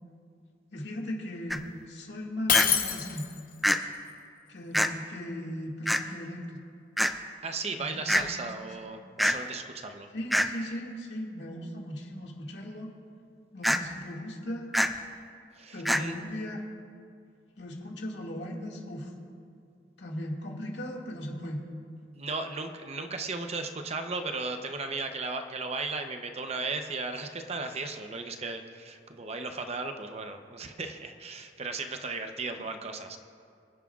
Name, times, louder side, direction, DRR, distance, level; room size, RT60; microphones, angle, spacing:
voice 1, 0.7-1.6 1.9-3.2 4.5-6.4 7.8-8.5 8.8-9.0 10.1-12.9 13.5-14.7 15.7-16.6 17.6-19.1 20.0-21.6, left 1 dB, 80° left, -1 dB, 2.1 m, -38 dB
sound 1, 1.5-1.6 2.5-2.7 3.6-3.8 4.7-4.9 5.9-6.0 7.0-7.1 8.1-8.2 9.2-9.4 10.3-10.5 13.6-13.8 14.7-14.9 15.9-16.0, equal, ahead, 0.4 m, -24 dB
Shatter, 2.5-3.5, left 8 dB, 50° left, 0.9 m, -25 dB
voice 2, 7.4-10.1 15.6-16.1 22.2-33.2, right 3 dB, 35° right, 6 dB, 0.7 m, -36 dB
26.5 x 11.0 x 2.4 m, 2.3 s
head